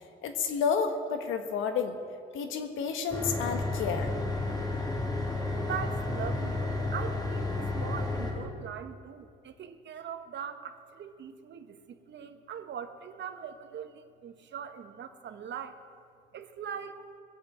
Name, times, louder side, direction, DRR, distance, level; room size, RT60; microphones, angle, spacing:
voice 1, 0.2-2.0 2.3-4.1, left 6 dB, 90° left, 7 dB, 1.5 m, -30 dB
sound 1, 3.1-8.3, left 2 dB, 20° left, 4.5 m, -32 dB
voice 2, 5.5-6.6 6.9-11.8 12.1-15.7 16.3-17.0, right 8 dB, 65° right, 8 dB, 1.3 m, -41 dB
20.5 x 7.8 x 8.6 m, 2.3 s
cardioid pair, 90°, 20 cm